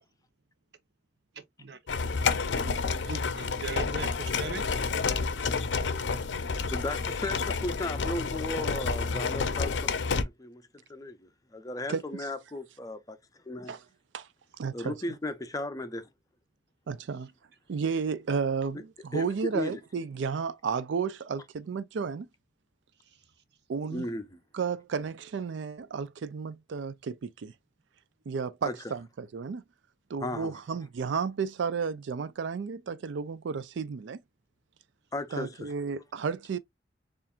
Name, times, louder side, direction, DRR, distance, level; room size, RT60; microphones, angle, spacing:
sound 1, 1.9-10.2, left 4 dB, 70° left, 0.5 m, -29 dB
voice 1, 2.9-4.6, right 4 dB, 60° right, 0.8 m, -39 dB
voice 2, 6.7-13.7 14.7-16.1 19.1-19.3 19.5-19.8 23.9-24.4 28.6-28.7 30.2-30.5 35.1-35.7, left 2 dB, 20° left, 0.5 m, -36 dB
voice 3, 14.6-14.9 16.9-17.3 17.7-22.3 23.7-24.1 24.5-27.5 28.3-29.6 30.1-34.2 35.3-36.6, right 5 dB, 75° right, 0.4 m, -32 dB
7.0 x 2.5 x 2.4 m
head